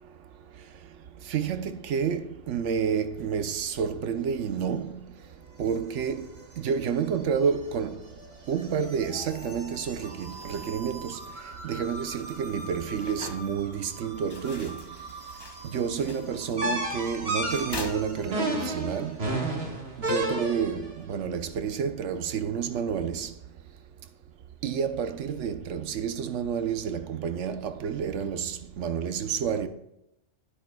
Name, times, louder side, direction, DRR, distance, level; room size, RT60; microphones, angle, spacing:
voice 1, 1.3-5.0 5.6-6.3 6.6-8.0 8.5-11.2 11.6-14.8 15.6-19.1 20.0-23.3 24.6-29.7, right 7 dB, 90° right, 1.1 m, -29 dB
sound 1, 4.8-19.4, right 1 dB, 25° right, 1.6 m, -46 dB
sound 2, 10.2-18.7, left 2 dB, 25° left, 0.8 m, -46 dB
sound 3, 16.6-20.9, right 1 dB, 55° right, 1.8 m, -30 dB
11.0 x 10.0 x 2.3 m
omnidirectional pair, 1.2 m